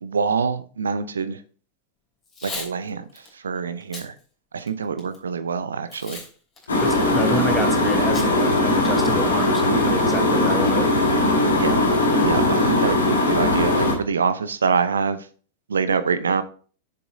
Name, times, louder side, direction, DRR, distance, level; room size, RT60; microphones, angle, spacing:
voice 1, 0.0-1.4 2.4-3.0 3.4-4.1 4.5-6.2 11.6-11.8 12.2-15.2 15.7-16.4, right 5 dB, 70° right, 0.7 m, -25 dB
Packing tape duct tape / Tearing, 2.2-2.7 3.1-3.3 3.8-4.1 4.6-5.2 5.9-6.3 6.6-6.7 8.1-8.3 8.6-8.7 9.0-9.4, left 3 dB, 20° left, 3.3 m, -36 dB
sound 1, 6.7-13.9, left 2 dB, 70° left, 2.0 m, -19 dB
voice 2, 6.8-10.9, right 3 dB, 5° right, 1.3 m, -29 dB
7.0 x 6.9 x 3.6 m
figure-of-eight pair, 90°, 0 cm